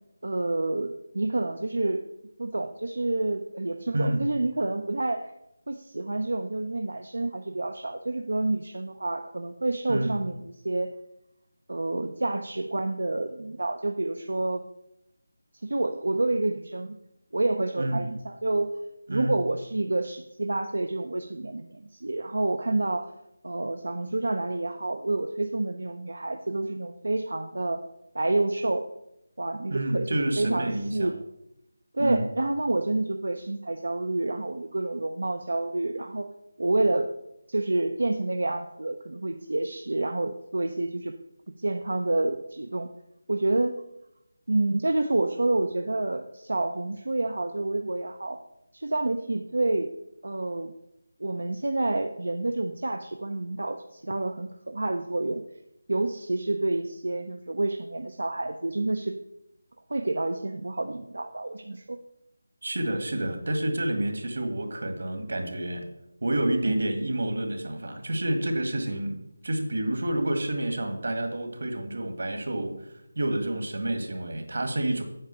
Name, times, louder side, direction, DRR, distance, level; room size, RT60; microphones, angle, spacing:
voice 1, 0.2-2.0 2.4-5.3 5.7-10.9 11.7-14.7 15.6-17.0 17.3-18.7 19.1-23.1 23.4-27.8 28.1-28.8 29.4-30.1 30.4-31.1 31.9-36.3 36.6-37.1 37.5-41.1 41.6-42.9 43.3-43.8 44.5-48.4 48.7-49.9 50.2-50.7 51.2-55.4 55.9-59.1 59.9-62.0 66.7-66.8, right 2 dB, 85° right, 6 dB, 0.7 m, -28 dB
voice 2, 29.7-31.1 32.0-32.2 62.6-65.8 66.2-75.0, right 1 dB, 65° right, 5 dB, 1.9 m, -29 dB
8.8 x 4.9 x 6.9 m, 0.84 s
figure-of-eight pair, 175°, 0 cm